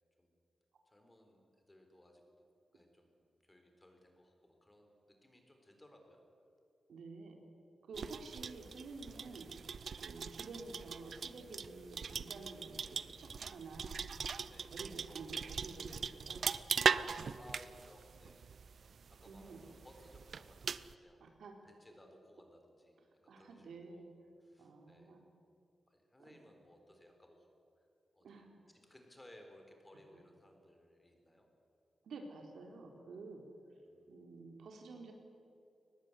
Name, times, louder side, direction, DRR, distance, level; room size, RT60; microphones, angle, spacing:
voice 1, 0.9-2.5 2.7-6.2 9.8-10.0 14.5-14.7 16.8-18.4 19.2-21.2 21.6-24.1 24.4-25.1 25.9-27.5 27.8-27.9 28.1-31.5 33.7-34.1, left 1 dB, 15° left, 3 dB, 3.9 m, -61 dB
voice 2, 6.9-7.4 7.9-9.5 10.0-14.0 14.4-16.4 19.2-19.6 21.2-21.7 23.3-24.0 24.6-25.2 26.2-26.4 28.2-28.6 32.0-33.5 34.1-35.1, right 3 dB, 90° right, 3 dB, 3.8 m, -50 dB
sound 1, 7.9-20.9, right 6 dB, 55° right, 0.7 m, -40 dB
22.5 x 20.0 x 9.8 m, 2.5 s
wide cardioid pair, 155°, 0 cm